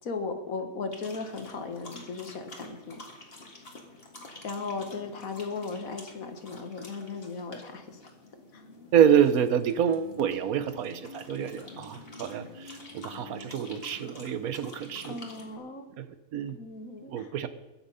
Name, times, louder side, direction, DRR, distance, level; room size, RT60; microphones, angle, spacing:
voice 1, 0.0-3.2 4.4-8.1 8.5-8.6 15.0-15.9 16.6-17.3, left 4 dB, 75° left, 7 dB, 1.8 m, -37 dB
sound 1, 0.9-15.6, left 2 dB, 45° left, 2.1 m, -47 dB
voice 2, 8.9-15.2 16.0-16.1 16.3-16.6 17.1-17.5, right 9 dB, 90° right, 12 dB, 1.3 m, -27 dB
21.0 x 7.1 x 5.5 m, 1.0 s
omnidirectional pair, 1.5 m